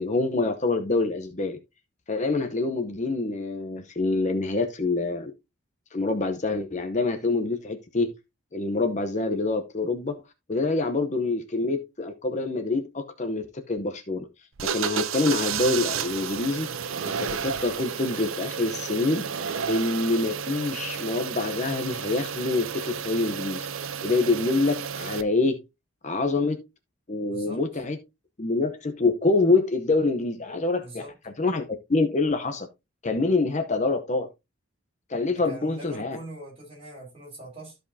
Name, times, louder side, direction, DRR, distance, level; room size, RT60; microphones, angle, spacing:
voice 1, 0.0-1.6 2.1-5.3 5.9-8.2 8.5-10.2 10.5-14.3 14.6-16.7 17.0-19.3 19.7-23.7 24.0-25.6 26.0-26.6 27.1-28.0 28.4-31.6 31.9-32.7 33.0-34.3 35.1-36.2, left 3 dB, 35° left, 0.8 m, -26 dB
sound 1, 14.6-25.2, right 7 dB, 80° right, 0.7 m, -32 dB
voice 2, 27.3-27.6 30.8-31.1 35.5-37.8, right 1 dB, 30° right, 5.0 m, -42 dB
13.5 x 5.2 x 2.7 m
head